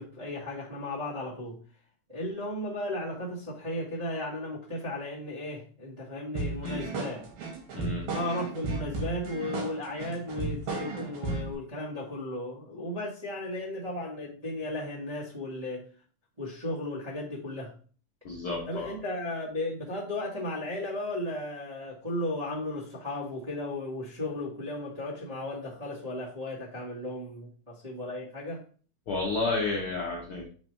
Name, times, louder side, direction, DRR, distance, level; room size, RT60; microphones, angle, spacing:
voice 1, 0.0-1.6 2.1-7.3 8.1-15.8 16.4-17.7 18.7-28.6, left 1 dB, 35° right, -7 dB, 0.6 m, -35 dB
sound 1, 6.3-11.5, right 3 dB, 85° right, 3.6 m, -34 dB
voice 2, 7.7-8.1 18.2-18.9 29.1-30.5, left 3 dB, 70° left, -2 dB, 1.2 m, -31 dB
7.0 x 3.3 x 4.5 m, 0.42 s
omnidirectional pair, 4.0 m